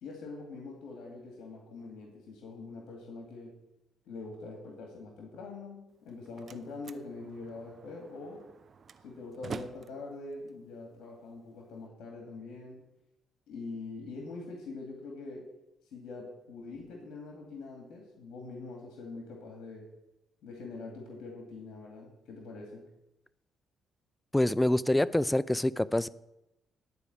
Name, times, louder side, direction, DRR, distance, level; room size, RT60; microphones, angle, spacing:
voice 1, 0.0-3.5 4.0-8.5 9.0-12.8 13.5-15.5 15.8-19.9 20.4-22.9, left 3 dB, 80° left, 2.3 m, -44 dB
Slam, 5.9-11.9, right 5 dB, 45° right, 0.6 m, -48 dB
voice 2, 24.3-26.1, left 1 dB, 10° left, 0.4 m, -26 dB
11.0 x 4.8 x 8.4 m
cardioid pair, 90°, 0 cm